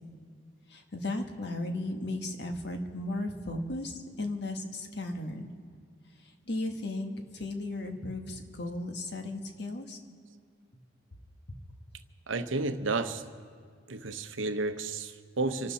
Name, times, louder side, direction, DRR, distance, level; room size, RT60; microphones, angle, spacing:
voice 1, 0.7-5.5 6.5-10.0, left 2 dB, 60° left, 5 dB, 1.5 m, -35 dB
voice 2, 12.3-13.2 13.9-15.7, right 3 dB, 90° right, 9 dB, 0.9 m, -32 dB
27.0 x 12.0 x 4.2 m, 2.1 s
head